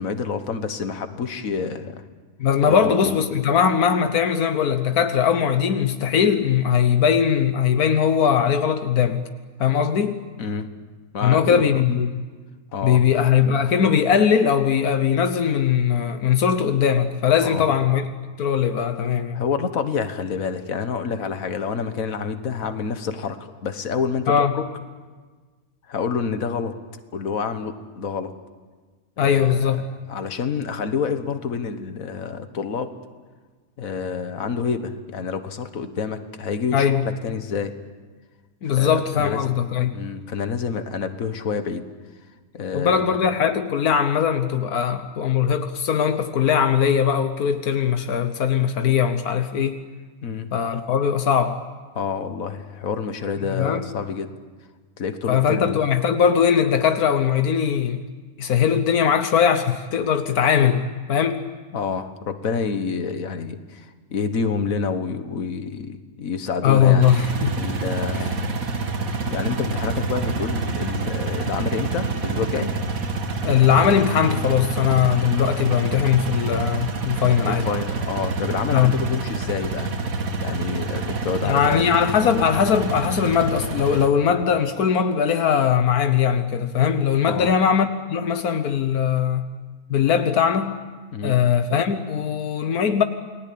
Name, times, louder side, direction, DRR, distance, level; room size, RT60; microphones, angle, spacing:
voice 1, 0.0-2.0 2.7-3.1 10.4-10.7 11.1-11.8 12.7-13.0 17.4-17.6 19.3-24.7 25.9-26.7 27.1-28.3 29.2-32.9 33.8-37.7 38.7-39.6 39.9-41.8 42.5-43.2 50.2-50.5 51.9-54.3 55.0-55.8 61.7-67.0 67.6-68.5 69.2-72.7 77.5-80.0 80.4-81.9 87.3-87.5 91.1-91.4, left 5 dB, 65° left, 1.8 m, -28 dB
voice 2, 2.4-9.2 9.6-10.2 11.2-12.2 12.8-18.1 18.4-19.4 24.3-24.5 29.2-29.8 36.7-37.0 38.6-39.9 42.7-49.8 50.5-51.6 53.5-53.8 55.3-58.0 58.4-61.5 66.6-67.5 73.4-77.7 78.7-78.9 81.4-89.5 89.9-90.8 91.2-93.0, left 8 dB, 85° left, 1.5 m, -20 dB
sound 1, 67.0-84.1, right 3 dB, 70° right, 2.1 m, -27 dB
29.5 x 20.0 x 8.6 m
omnidirectional pair, 1.5 m